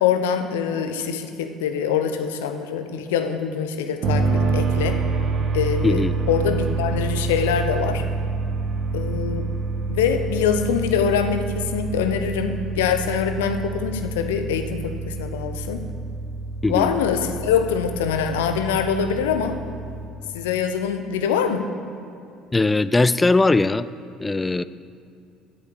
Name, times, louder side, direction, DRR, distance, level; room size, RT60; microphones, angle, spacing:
voice 1, 0.0-5.0 5.5-8.0 8.9-9.5 9.9-15.8 16.7-19.6 20.3-21.7, left 7 dB, 70° left, 7 dB, 0.7 m, -24 dB
sound 1, 4.0-20.1, right 3 dB, 50° right, 1.0 m, -27 dB
voice 2, 5.8-6.1 16.6-16.9 22.5-23.9 24.2-24.6, left 3 dB, 20° left, 15 dB, 0.3 m, -19 dB
8.6 x 6.9 x 6.9 m, 2.4 s
figure-of-eight pair, 55°, 0 cm